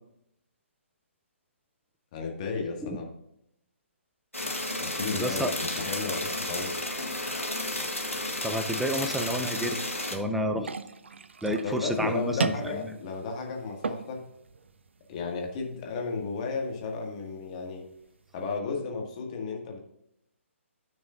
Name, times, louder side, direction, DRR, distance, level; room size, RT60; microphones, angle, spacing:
voice 1, 2.1-3.1 4.8-6.8 11.6-14.2 15.1-17.8 18.3-19.8, left 4 dB, 30° left, 1 dB, 1.9 m, -33 dB
sound 1, 4.3-10.2, left 1 dB, 85° left, 1.5 m, -32 dB
voice 2, 5.1-5.5 8.4-9.8 10.1-10.7 11.4-12.5, equal, ahead, 7 dB, 0.5 m, -30 dB
sound 2, 10.6-18.6, right 4 dB, 60° right, 0.6 m, -39 dB
14.0 x 6.3 x 2.6 m, 0.77 s
figure-of-eight pair, 130°, 7 cm